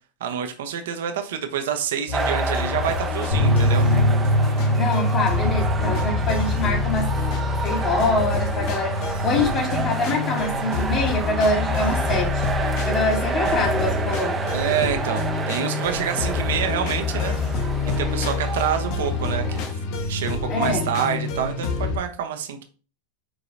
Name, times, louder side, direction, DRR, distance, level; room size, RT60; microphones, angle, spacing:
voice 1, 0.2-3.9 14.5-17.4 18.0-19.6 20.1-22.6, right 8 dB, 70° right, 6 dB, 0.7 m, -27 dB
sound 1, 2.1-22.0, left 4 dB, 55° left, 1.0 m, -27 dB
sound 2, 2.1-19.7, right 5 dB, 20° right, 0.5 m, -30 dB
sound 3, 3.3-10.4 10.7-10.8 11.1-11.2, equal, 90° left, 1.9 m, -24 dB
voice 2, 4.7-7.1 7.4-12.4 12.8-14.4 20.5-20.8, left 2 dB, 40° left, 0 dB, 2.5 m, -25 dB
4.7 x 3.8 x 2.6 m, 0.36 s
hypercardioid pair, 105°, 0 cm